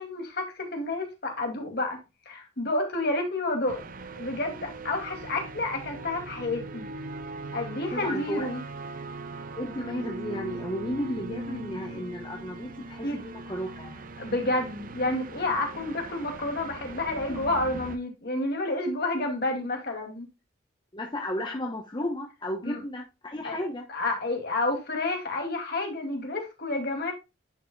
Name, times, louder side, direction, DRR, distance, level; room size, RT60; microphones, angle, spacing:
voice 1, 0.0-2.0 2.3-3.8 4.2-6.9 7.5-8.6 13.0-13.2 14.2-20.3 22.6-22.8 23.4-23.6 23.9-27.1, left 2 dB, 55° left, 2.3 m, -30 dB
sound 1, 3.7-18.0, right 2 dB, 45° right, 0.6 m, -40 dB
voice 2, 7.9-8.5 9.6-14.1 20.9-23.8, equal, 25° left, 0.9 m, -34 dB
10.5 x 5.6 x 2.2 m
head